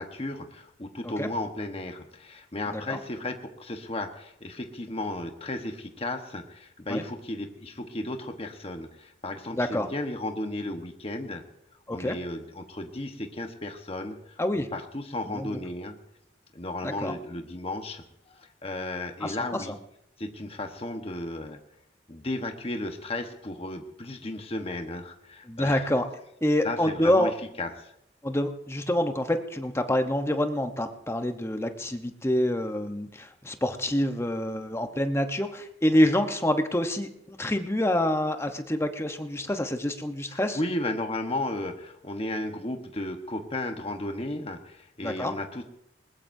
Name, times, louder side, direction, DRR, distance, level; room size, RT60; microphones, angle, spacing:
voice 1, 0.0-11.4 11.9-16.0 16.5-19.7 20.2-21.6 22.1-25.9 26.6-27.3 27.6-27.9 40.3-45.6, left 1 dB, 30° left, 5 dB, 1.2 m, -34 dB
voice 2, 9.5-9.9 11.9-12.2 14.4-14.7 15.3-15.6 16.8-17.1 19.2-19.4 25.5-26.0 26.4-27.3 28.2-40.6 45.0-45.3, left 1 dB, 15° left, 6 dB, 0.9 m, -27 dB
20.0 x 20.0 x 2.7 m, 0.78 s
head